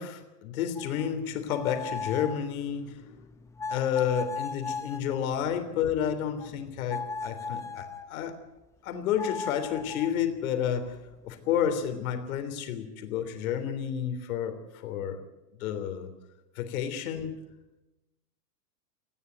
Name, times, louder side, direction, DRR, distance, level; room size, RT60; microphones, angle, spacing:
voice 1, 0.0-3.2 3.7-8.4 8.8-11.0 11.2-15.2 15.6-16.1 16.5-17.4, left 9 dB, 60° left, 8 dB, 3.4 m, -30 dB
sound 1, 0.8-8.1 9.2-12.1, left 4 dB, 5° left, 0.8 m, -39 dB
19.5 x 14.5 x 9.4 m, 0.97 s
hypercardioid pair, 145°, 48 cm